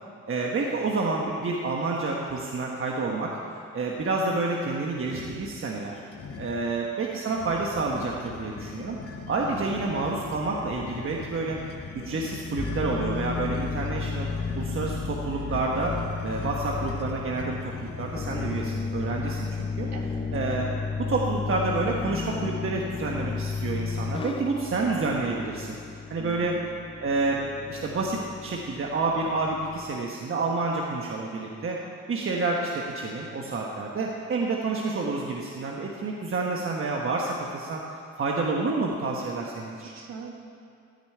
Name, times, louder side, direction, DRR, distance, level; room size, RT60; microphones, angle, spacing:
voice 1, 0.3-3.4 3.7-6.0 6.4-9.0 9.3-11.6 11.9-14.3 14.5-16.0 16.2-19.9 20.3-20.7 21.0-25.8 26.1-26.6 27.0-27.4 27.7-31.8 32.1-37.8 38.2-39.9, right 3 dB, 45° right, -1 dB, 1.3 m, -29 dB
sound 1, 5.0-5.5 6.1-6.7 7.3-19.3, left 5 dB, 50° left, 1.1 m, -41 dB
sound 2, 12.6-30.0, left 5 dB, 20° left, 0.3 m, -33 dB
voice 2, 19.9-20.4 26.2-26.9 39.8-40.3, right 4 dB, 60° right, 1 dB, 2.0 m, -42 dB
14.5 x 5.2 x 9.1 m, 2.3 s
cardioid pair, 90°, 30 cm